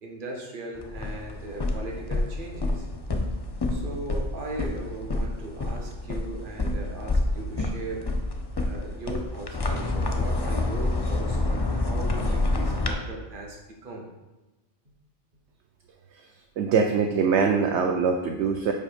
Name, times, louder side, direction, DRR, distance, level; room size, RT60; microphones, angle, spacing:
voice 1, 0.0-2.9 3.7-8.1 8.5-14.1, right 2 dB, 45° right, 0 dB, 1.2 m, -38 dB
sound 1, 0.7-12.9, left 2 dB, 30° left, 0.4 m, -28 dB
voice 2, 16.6-18.7, right 5 dB, 70° right, 3 dB, 0.8 m, -23 dB
5.4 x 4.8 x 5.1 m, 1.1 s
omnidirectional pair, 1.3 m